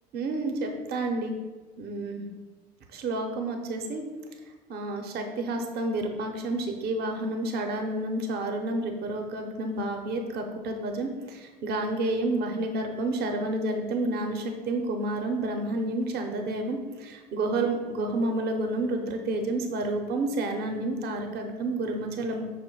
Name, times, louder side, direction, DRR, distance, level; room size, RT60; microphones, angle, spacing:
voice 1, 0.1-1.4 1.8-2.2 2.9-4.0 4.7-22.4, right 2 dB, 50° right, 4 dB, 0.7 m, -30 dB
5.4 x 2.1 x 4.5 m, 1.3 s
hypercardioid pair, 80°, 21 cm